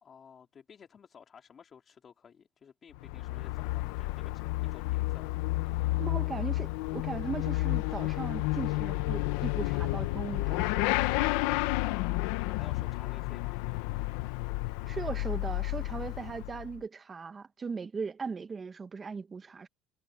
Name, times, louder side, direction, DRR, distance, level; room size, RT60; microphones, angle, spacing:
voice 1, 0.0-5.4 11.4-13.7, left 7 dB, 35° left, 3.6 m, -54 dB
Motorcycle / Accelerating revving vroom, 2.9-16.8, left 19 dB, 85° left, 0.9 m, -31 dB
voice 2, 6.0-10.9 14.9-19.7, right 5 dB, 25° right, 1.3 m, -38 dB
cardioid pair, 125°, 0 cm